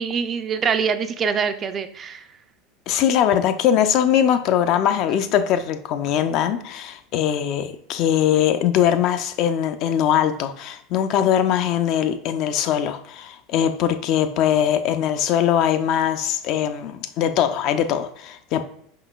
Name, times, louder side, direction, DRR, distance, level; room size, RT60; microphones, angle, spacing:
voice 1, 0.0-2.2, right 6 dB, 35° right, 10 dB, 0.4 m, -24 dB
voice 2, 2.9-18.6, left 9 dB, 55° left, 9 dB, 0.4 m, -21 dB
4.9 x 3.7 x 2.3 m, 0.70 s
hypercardioid pair, 95°, 0 cm